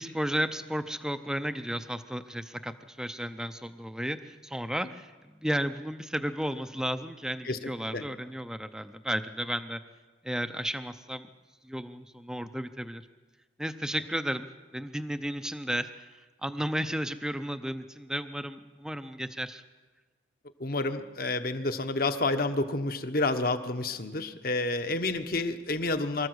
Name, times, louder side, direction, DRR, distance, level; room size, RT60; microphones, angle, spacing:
voice 1, 0.0-9.8 10.2-11.3 11.6-13.1 13.6-19.6, equal, 5° right, 9 dB, 0.6 m, -33 dB
voice 2, 20.6-26.3, left 2 dB, 50° left, 8 dB, 1.1 m, -29 dB
24.5 x 13.5 x 8.0 m, 1.3 s
head